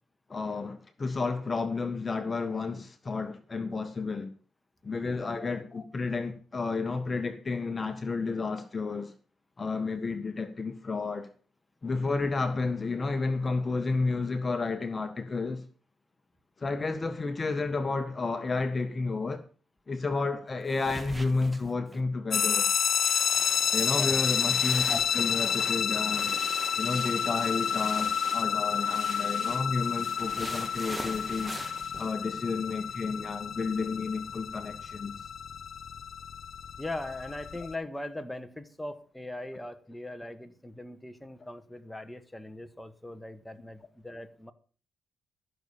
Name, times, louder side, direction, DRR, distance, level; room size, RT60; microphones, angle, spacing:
voice 1, 0.3-4.3 4.8-9.1 9.6-11.3 11.8-15.6 16.6-19.4 19.9-22.7 23.7-26.3 26.7-31.5 32.0-35.1, left 4 dB, 35° left, 1.5 m, -31 dB
sound 1, 20.7-22.0 22.4-22.5 22.9-32.1, right 2 dB, 20° right, 1.6 m, -43 dB
sound 2, 22.3-37.7, left 8 dB, 60° left, 0.7 m, -30 dB
voice 2, 36.8-44.5, left 1 dB, 10° left, 1.7 m, -40 dB
13.5 x 6.9 x 7.0 m
supercardioid pair, 55°, 0 cm